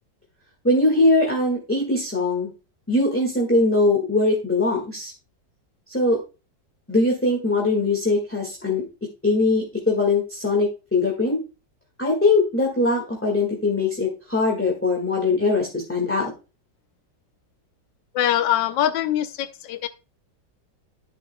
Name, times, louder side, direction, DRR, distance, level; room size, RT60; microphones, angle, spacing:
voice 1, 0.6-2.5 2.9-5.1 5.9-6.2 6.9-8.8 9.2-11.4 12.0-16.3, left 2 dB, 5° left, -1 dB, 1.5 m, -21 dB
voice 2, 18.1-19.9, left 11 dB, 90° left, 11 dB, 1.3 m, -23 dB
11.5 x 7.5 x 2.2 m, 0.30 s
omnidirectional pair, 1.9 m